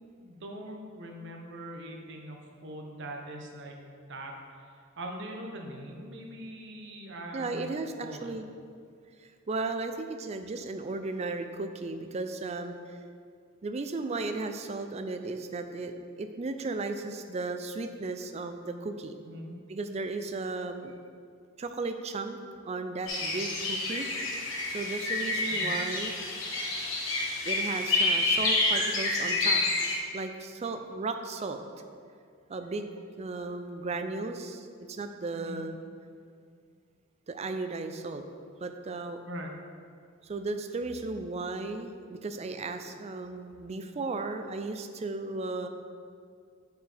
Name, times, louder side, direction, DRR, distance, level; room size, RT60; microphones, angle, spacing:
voice 1, 0.2-3.8 4.1-4.6 5.0-7.7 8.0-8.4 19.2-19.6 25.5-25.8 35.3-35.7 39.3-39.6, right 1 dB, 65° right, 1 dB, 0.9 m, -42 dB
voice 2, 7.3-8.4 9.2-12.7 13.6-19.2 19.7-20.9 21.6-22.4 22.7-24.1 24.7-26.2 27.4-29.6 30.1-31.6 32.5-35.8 37.3-38.2 38.6-39.2 40.2-45.7, right 3 dB, 35° right, 7 dB, 0.4 m, -35 dB
sound 1, 23.1-30.0, left 2 dB, 80° left, 1.2 m, -28 dB
8.6 x 4.6 x 3.4 m, 2.2 s
head